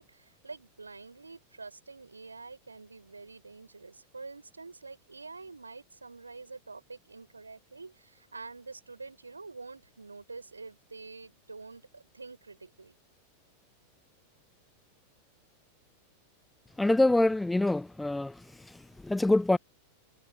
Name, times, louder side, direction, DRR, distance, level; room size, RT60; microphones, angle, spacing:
voice 1, 0.0-13.0, right 3 dB, 80° right, 5.9 m, -47 dB
voice 2, 16.8-18.3 19.0-19.6, left 2 dB, 5° left, 0.3 m, -25 dB
figure-of-eight pair, 90°, 0 cm